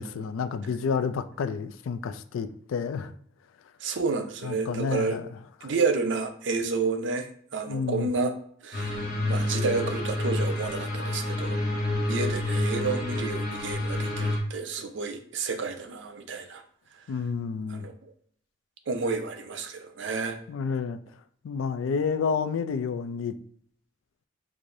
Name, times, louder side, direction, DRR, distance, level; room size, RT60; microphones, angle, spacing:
voice 1, 0.0-3.1 4.4-5.3 5.6-5.7 7.7-8.1 17.1-17.9 20.5-21.0 21.4-23.4, left 5 dB, 85° left, 11 dB, 0.3 m, -30 dB
voice 2, 3.8-5.2 5.6-8.3 8.6-11.6 12.1-16.6 17.7-17.9 18.9-20.4, right 4 dB, 65° right, 7 dB, 0.5 m, -30 dB
sound 1, 8.7-14.4, left 1 dB, 50° left, 0.8 m, -28 dB
4.7 x 2.5 x 2.6 m, 0.63 s
head